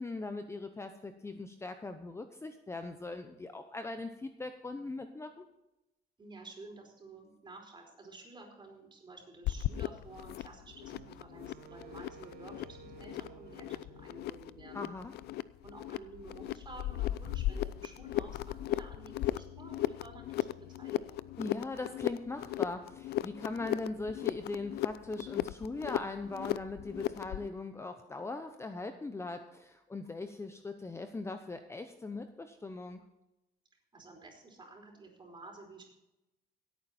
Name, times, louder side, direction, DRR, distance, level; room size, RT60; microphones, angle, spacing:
voice 1, 0.0-5.4 14.7-15.1 21.4-33.0, left 3 dB, 15° left, 8 dB, 0.8 m, -40 dB
voice 2, 6.2-14.9 15.6-21.2 33.9-35.8, right 2 dB, 25° right, 1 dB, 4.8 m, -51 dB
sound 1, 9.4-27.5, left 14 dB, 70° left, 0.5 m, -37 dB
Wind instrument woodwind instrument, 10.9-15.1, right 9 dB, 65° right, 0.7 m, -55 dB
16.5 x 9.0 x 4.4 m, 0.92 s
cardioid pair, 110°, 17 cm